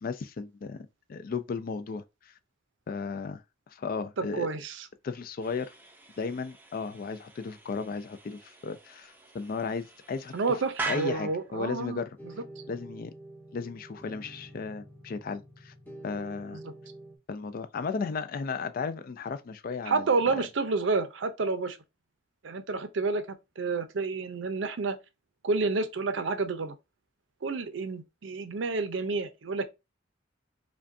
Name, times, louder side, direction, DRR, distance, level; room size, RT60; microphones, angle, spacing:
voice 1, 0.0-2.3 2.9-3.4 3.7-4.5 5.0-5.7 6.2-10.3 10.9-12.1 12.7-13.1 13.5-15.7 16.0-16.6 17.3-20.3, left 5 dB, 45° left, 0.3 m, -35 dB
voice 2, 4.2-4.9 10.3-12.0 12.2-12.3 16.5-16.7 19.9-21.8 22.4-23.3 23.6-25.0 25.4-26.7 27.4-29.6, right 4 dB, 65° right, 0.6 m, -29 dB
sound 1, 5.4-11.5, right 3 dB, 10° right, 0.5 m, -42 dB
sound 2, 12.2-17.2, right 1 dB, 10° left, 0.9 m, -48 dB
5.0 x 2.3 x 2.6 m
head